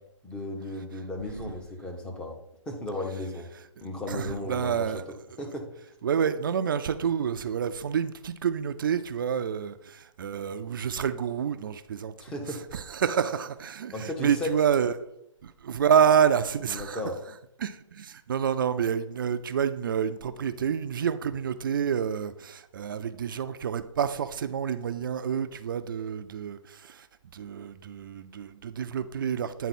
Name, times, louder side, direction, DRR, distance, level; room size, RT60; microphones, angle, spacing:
voice 1, 0.2-2.4 2.7-3.5 3.8-4.9 5.4-5.7 12.2-12.6 13.9-14.5 16.7-17.2, left 1 dB, 5° left, 0.6 m, -35 dB
voice 2, 4.1-5.0 6.0-12.1 12.7-14.9 15.4-17.0 17.6-27.1 27.3-29.7, right 8 dB, 40° right, 0.4 m, -28 dB
9.3 x 4.0 x 4.2 m
hypercardioid pair, 155°, 16 cm